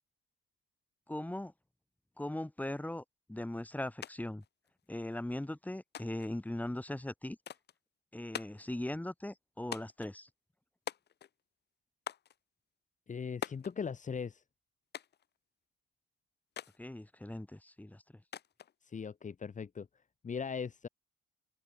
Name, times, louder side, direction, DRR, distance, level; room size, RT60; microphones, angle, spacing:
voice 1, 1.1-1.5 2.2-4.4 4.9-7.4 8.1-10.3 16.8-18.0, left 1 dB, 10° left, 7.0 m, -39 dB
sound 1, 4.0-4.1 4.4-5.2 5.9-6.4 7.5-7.8 8.3-8.7 9.7-10.1 10.9-11.4 12.1-12.4 13.4-13.7 14.9-15.3 16.6-16.8 18.3-18.7, left 9 dB, 55° left, 1.5 m, -43 dB
voice 2, 13.1-14.4 18.8-19.9 20.2-20.9, left 6 dB, 40° left, 2.3 m, -39 dB
open air
cardioid pair, 90°, 20 cm